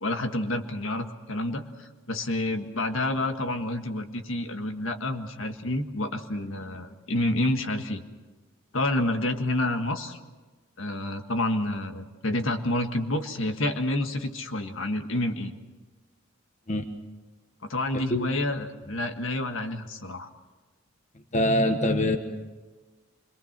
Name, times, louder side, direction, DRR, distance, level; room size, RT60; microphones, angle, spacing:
voice 1, 0.0-8.0 8.7-10.2 10.8-15.5 17.7-20.3, left 1 dB, 70° left, 6 dB, 1.6 m, -29 dB
voice 2, 17.9-18.3 21.3-22.2, left 1 dB, 35° left, 7 dB, 1.3 m, -24 dB
26.0 x 22.5 x 6.0 m, 1.3 s
head